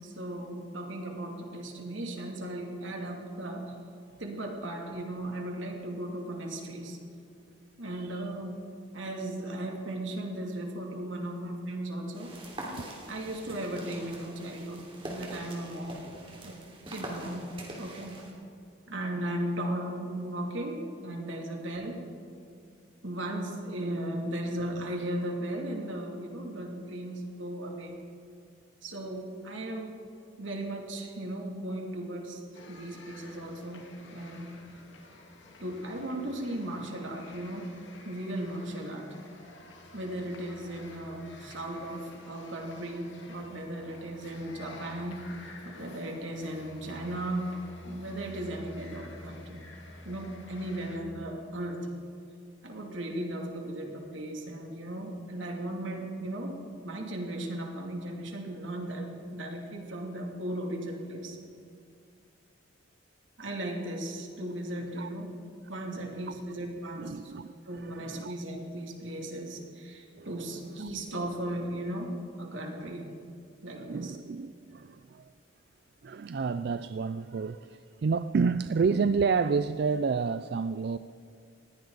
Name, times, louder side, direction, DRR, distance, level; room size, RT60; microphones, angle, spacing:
voice 1, 0.0-3.6 4.2-7.0 7.8-8.6 8.9-12.3 13.1-16.0 16.4-16.6 16.9-18.2 18.9-22.0 23.0-28.0 28.8-30.0 30.4-32.4 32.7-33.9 34.1-34.5 35.6-37.7 38.0-39.1 39.9-45.2 45.6-47.5 47.8-49.6 50.0-51.9 52.6-56.6 56.8-61.4 63.4-65.3 65.7-67.3 67.7-73.1 73.6-74.2, right 1 dB, 75° right, 1 dB, 2.7 m, -36 dB
voice 2, 7.9-8.3 12.8-12.9 64.9-65.1 65.7-66.3 67.0-68.3 70.2-70.3 70.8-70.9 72.8-73.0 73.7-75.3 76.0-81.0, right 5 dB, 55° right, 12 dB, 0.3 m, -30 dB
sound 1, 12.1-18.3, right 1 dB, 25° right, 3.1 m, -43 dB
sound 2, 32.5-51.0, left 1 dB, 70° left, 2.2 m, -50 dB
19.5 x 17.0 x 4.0 m, 2.4 s
head